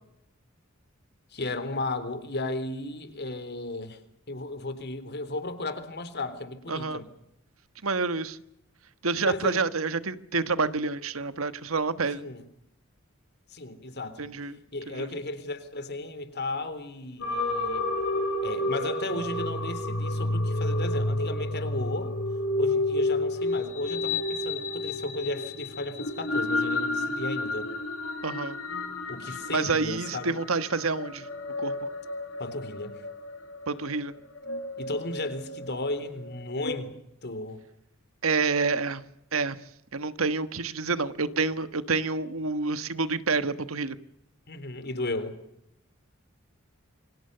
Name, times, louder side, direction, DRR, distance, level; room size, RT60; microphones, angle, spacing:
voice 1, 1.3-4.0 4.3-7.1 9.1-9.6 12.1-12.4 13.5-14.3 14.7-17.9 18.4-22.1 22.6-27.7 29.1-30.4 32.4-33.0 34.8-37.6 44.5-45.4, left 2 dB, 55° left, 3.6 m, -35 dB
voice 2, 6.7-7.0 7.8-8.4 9.0-12.3 14.2-14.6 14.9-15.1 28.2-28.6 29.3-31.3 31.6-31.9 33.7-34.1 38.2-39.0 39.3-39.6 39.9-44.0, right 4 dB, 85° right, 1.4 m, -28 dB
sound 1, 17.2-36.7, left 2 dB, 70° left, 6.4 m, -31 dB
28.5 x 24.5 x 6.8 m
head